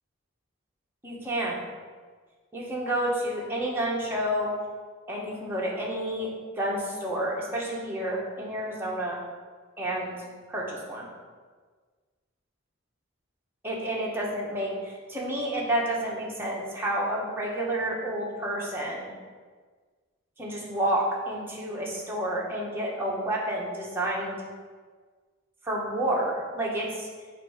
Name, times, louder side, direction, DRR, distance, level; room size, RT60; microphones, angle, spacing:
voice 1, 1.0-1.6 2.5-4.5 5.1-6.3 6.6-9.2 9.8-10.1 10.5-11.1 13.6-19.1 20.4-24.4 25.6-27.1, right 1 dB, 10° right, -4 dB, 1.1 m, -30 dB
7.4 x 2.7 x 4.9 m, 1.5 s
head